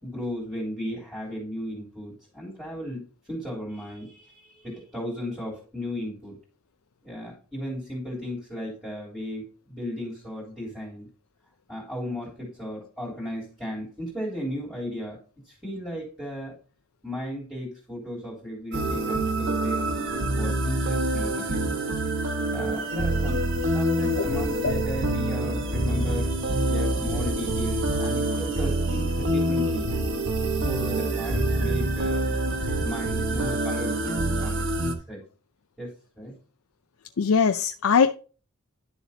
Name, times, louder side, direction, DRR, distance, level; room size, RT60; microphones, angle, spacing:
voice 1, 0.0-6.4 7.0-11.1 11.7-15.2 15.4-16.5 17.0-20.0 20.4-21.8 22.5-26.3 26.7-29.9 30.5-32.3 32.8-35.2 35.8-36.3, equal, ahead, 3.5 m, -35 dB
sound 1, 18.7-34.9, right 1 dB, 55° right, 1.3 m, -26 dB
voice 2, 37.2-38.2, left 6 dB, 75° left, 0.5 m, -21 dB
11.0 x 7.0 x 2.8 m
head